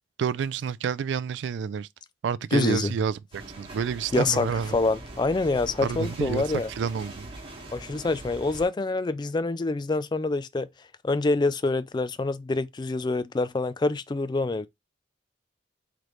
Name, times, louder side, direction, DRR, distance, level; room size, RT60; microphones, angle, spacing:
voice 1, 0.2-1.9 2.2-4.8 5.8-7.3, right 6 dB, 65° right, 0.3 m, -29 dB
voice 2, 2.5-2.9 4.1-4.5 4.7-6.7 7.7-10.7 11.0-14.7, left 3 dB, 25° left, 0.3 m, -26 dB
sound 1, 3.3-8.6, right 1 dB, 30° right, 1.5 m, -42 dB
3.9 x 3.1 x 3.1 m
head